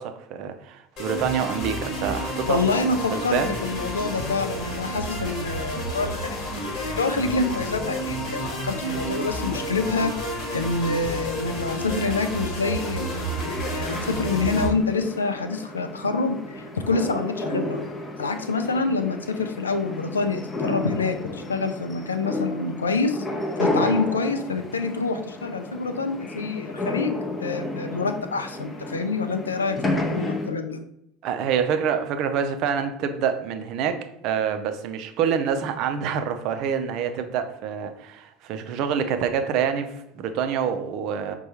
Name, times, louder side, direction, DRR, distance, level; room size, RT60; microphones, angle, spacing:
voice 1, 0.0-2.6 3.1-3.5 23.8-23.9 31.2-41.4, right 7 dB, 50° right, 7 dB, 0.4 m, -26 dB
sound 1, 1.0-14.7, right 1 dB, 45° left, 1.3 m, -30 dB
voice 2, 2.5-10.1 10.5-17.8 18.2-23.3 23.6-30.8, left 3 dB, 75° left, 7 dB, 0.4 m, -27 dB
sound 2, 12.3-30.5, left 2 dB, 20° left, 0.6 m, -32 dB
5.3 x 2.2 x 2.8 m, 0.79 s
figure-of-eight pair, 70°, 0 cm